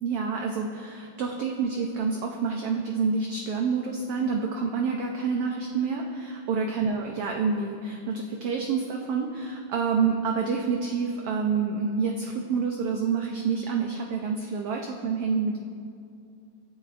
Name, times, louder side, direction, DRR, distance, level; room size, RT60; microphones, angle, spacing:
voice 1, 0.0-15.6, right 5 dB, 75° right, 1 dB, 1.3 m, -28 dB
25.0 x 9.0 x 2.5 m, 2.5 s
omnidirectional pair, 3.4 m